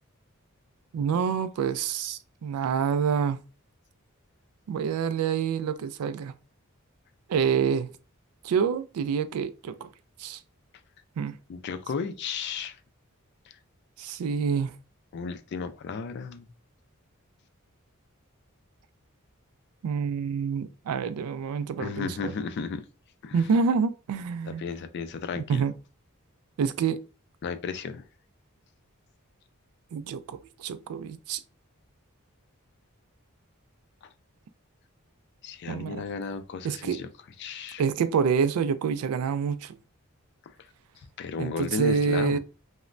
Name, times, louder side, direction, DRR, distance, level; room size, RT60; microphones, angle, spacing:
voice 1, 0.9-3.4 4.7-6.3 7.3-7.9 8.4-9.9 10.2-10.4 11.2-11.3 14.0-14.7 19.8-22.3 23.3-24.6 25.5-25.7 26.6-27.0 29.9-31.4 35.7-36.0 36.6-37.0 37.8-39.8 41.4-42.4, right 6 dB, 85° right, 0.3 m, -27 dB
voice 2, 11.5-12.8 15.1-16.5 21.8-22.8 23.2-23.4 24.5-25.6 27.4-28.0 35.4-37.1 37.4-37.8 41.2-42.4, left 5 dB, 50° left, 0.3 m, -34 dB
3.0 x 2.1 x 2.4 m
head